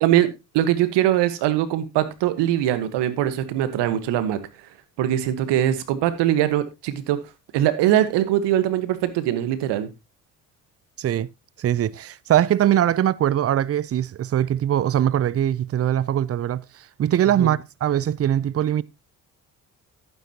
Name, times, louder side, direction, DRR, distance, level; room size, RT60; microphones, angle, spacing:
voice 1, 0.5-4.4 5.0-7.2 7.5-9.9 17.4-17.5, right 12 dB, 75° right, 1.4 m, -21 dB
voice 2, 11.0-11.3 11.6-18.8, right 11 dB, 35° right, 0.5 m, -22 dB
11.0 x 9.3 x 2.9 m
hypercardioid pair, 60°, 42 cm